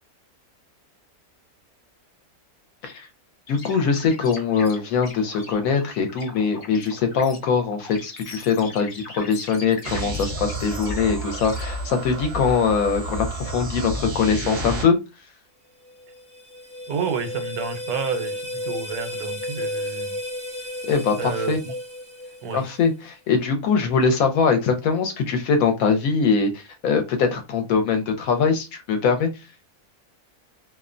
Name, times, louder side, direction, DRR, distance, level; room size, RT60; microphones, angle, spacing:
voice 1, 3.5-15.0 20.9-21.6 22.5-29.3, left 5 dB, 75° left, 1.0 m, -22 dB
sound 1, 3.5-11.6, left 3 dB, 50° left, 0.7 m, -41 dB
sound 2, 9.8-14.8, right 1 dB, 55° right, 0.7 m, -30 dB
sound 3, 15.9-22.9, left 1 dB, 5° left, 0.6 m, -33 dB
voice 2, 16.9-20.2 21.2-21.7 22.4-22.6, right 6 dB, 80° right, 1.1 m, -30 dB
2.6 x 2.1 x 2.4 m
omnidirectional pair, 1.6 m